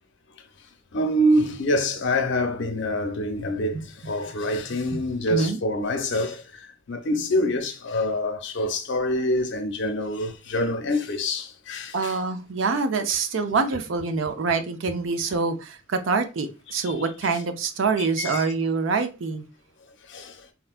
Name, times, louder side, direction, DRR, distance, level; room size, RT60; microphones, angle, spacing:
voice 1, 0.9-12.2 16.8-16.9 18.0-18.5 20.1-20.5, left 1 dB, 60° left, 0.6 m, -26 dB
voice 2, 5.3-5.6 11.9-19.4, right 4 dB, 65° right, 0.4 m, -25 dB
3.7 x 2.2 x 2.4 m
head